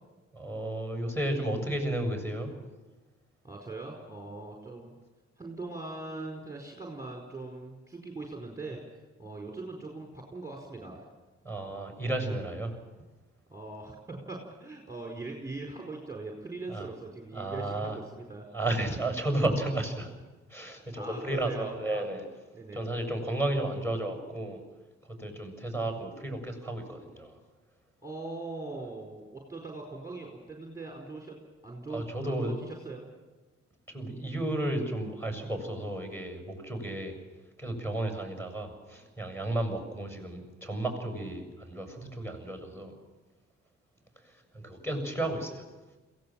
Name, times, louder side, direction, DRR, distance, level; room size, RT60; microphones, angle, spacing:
voice 1, 0.3-2.5 11.4-12.7 16.7-16.9 17.3-18.0 18.5-20.2 20.5-22.2 22.7-24.6 25.2-27.3 31.9-32.5 33.9-37.1 37.6-42.9 44.5-45.6, right 1 dB, 10° left, 4 dB, 7.0 m, -33 dB
voice 2, 3.4-5.0 5.4-8.8 9.2-11.1 13.5-18.4 21.0-22.0 22.5-22.8 28.0-33.0, right 2 dB, 10° right, 0 dB, 4.6 m, -41 dB
22.5 x 17.0 x 7.7 m, 1.2 s
supercardioid pair, 60°, 29 cm